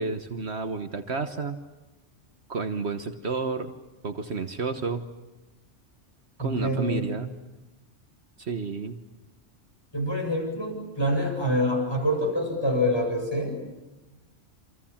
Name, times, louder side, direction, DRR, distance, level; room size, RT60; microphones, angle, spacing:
voice 1, 0.0-1.6 2.5-3.8 4.0-5.1 6.4-7.3 8.4-9.0, right 4 dB, 60° right, 7 dB, 1.5 m, -31 dB
voice 2, 6.4-7.1 9.9-13.6, equal, 20° left, 1 dB, 7.8 m, -26 dB
28.5 x 26.5 x 7.3 m, 1.1 s
omnidirectional pair, 1.3 m